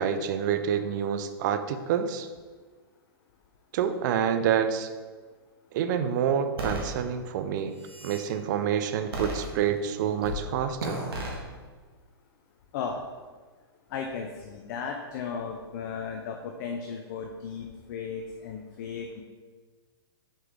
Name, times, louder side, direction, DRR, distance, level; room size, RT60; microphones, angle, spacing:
voice 1, 0.0-2.3 3.7-4.9 5.7-7.8 8.0-11.0, right 8 dB, 45° right, 9 dB, 0.6 m, -27 dB
sound 1, 6.6-6.9 7.6-8.2 9.1-9.9 10.2-10.4 10.8-11.4, equal, 70° right, 1.8 m, -33 dB
voice 2, 13.9-19.2, left 6 dB, 45° left, 2 dB, 0.7 m, -35 dB
6.0 x 5.7 x 3.7 m, 1.4 s
hypercardioid pair, 120°, 13 cm